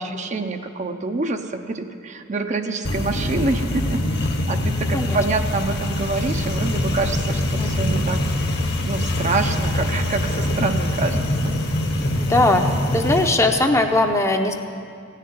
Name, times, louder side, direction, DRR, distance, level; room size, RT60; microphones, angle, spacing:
voice 1, 0.0-8.2 8.8-11.2, right 3 dB, 35° right, 6 dB, 0.6 m, -26 dB
sound 1, 2.8-13.3, left 1 dB, 55° left, 1.2 m, -23 dB
voice 2, 12.2-12.7 12.9-14.5, left 2 dB, 15° left, 4 dB, 0.7 m, -19 dB
16.0 x 6.6 x 9.4 m, 2.3 s
head